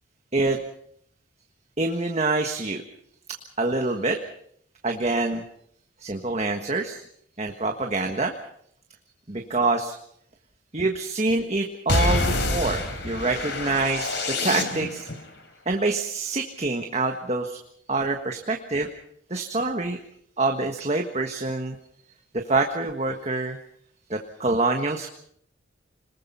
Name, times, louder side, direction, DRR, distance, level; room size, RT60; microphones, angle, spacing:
voice 1, 1.8-2.8 3.6-4.2 4.8-5.4 6.0-7.0 7.4-8.3 9.3-10.0 10.7-15.1 15.6-17.6 17.9-18.9 19.3-20.0 20.4-21.8 22.3-23.6 24.1-25.1, right 3 dB, 35° right, 3 dB, 1.5 m, -26 dB
sound 1, 11.9-15.1, left 2 dB, 60° left, 3.8 m, -26 dB
26.5 x 20.5 x 5.6 m, 0.68 s
head